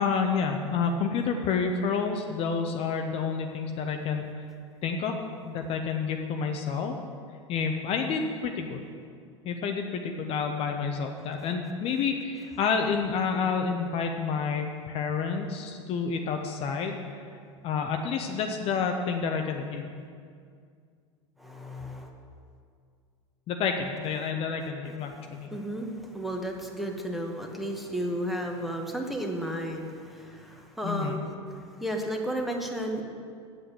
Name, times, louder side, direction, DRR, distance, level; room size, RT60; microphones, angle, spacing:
voice 1, 0.0-4.5 4.8-5.2 5.4-7.0 7.5-8.8 9.4-17.3 17.6-19.9 23.5-25.5 30.8-31.2, left 5 dB, 40° left, 4 dB, 0.8 m, -29 dB
voice 2, 21.4-22.1 24.8-33.0, equal, ahead, 2 dB, 1.3 m, -33 dB
8.0 x 7.9 x 7.5 m, 2.2 s
figure-of-eight pair, 85°, 16 cm